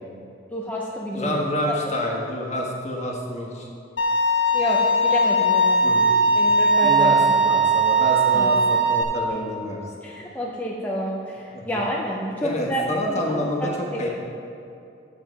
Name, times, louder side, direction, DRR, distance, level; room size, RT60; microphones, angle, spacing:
voice 1, 0.5-1.4 1.9-2.0 4.5-6.0 6.3-7.3 7.5-7.6 8.3-8.5 10.0-12.8 13.1-13.7, equal, 10° left, -4 dB, 0.6 m, -29 dB
voice 2, 1.1-3.7 5.8-6.5 6.8-9.8 11.5-11.8 12.4-14.1, equal, 40° left, -2 dB, 1.4 m, -28 dB
Bowed string instrument, 4.0-9.0, right 2 dB, 85° left, 1.5 m, -19 dB
7.5 x 7.3 x 5.7 m, 2.6 s
head